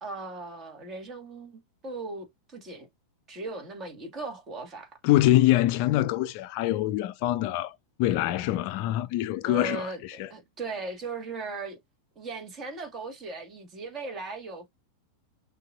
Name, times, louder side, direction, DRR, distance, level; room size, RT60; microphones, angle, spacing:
voice 1, 0.0-2.9 3.3-5.0 9.4-11.8 12.1-14.7, right 3 dB, 25° right, 1.6 m, -38 dB
voice 2, 5.0-10.3, left 15 dB, 45° left, 0.4 m, -25 dB
6.4 x 2.5 x 2.4 m
figure-of-eight pair, 90°, 0 cm